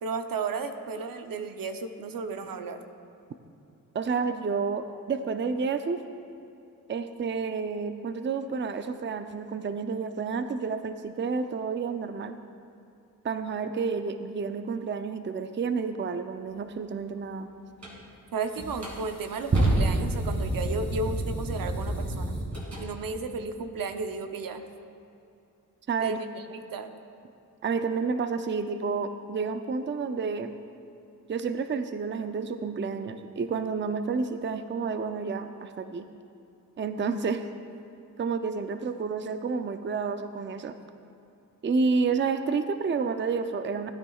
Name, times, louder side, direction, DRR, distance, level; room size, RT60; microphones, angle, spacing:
voice 1, 0.0-2.8 18.3-22.3 22.8-24.6 26.0-26.9, right 4 dB, 75° right, 7 dB, 0.7 m, -34 dB
voice 2, 3.9-6.0 6.9-12.3 13.2-17.5 25.9-26.2 27.6-30.5 31.3-36.1 36.8-37.4 38.2-40.8 41.6-43.9, right 5 dB, 35° right, 9 dB, 0.5 m, -30 dB
sound 1, 17.8-18.0 18.6-22.8, right 1 dB, 50° right, 2.3 m, -28 dB
16.5 x 9.6 x 2.4 m, 2.6 s
cardioid pair, 60°, 35 cm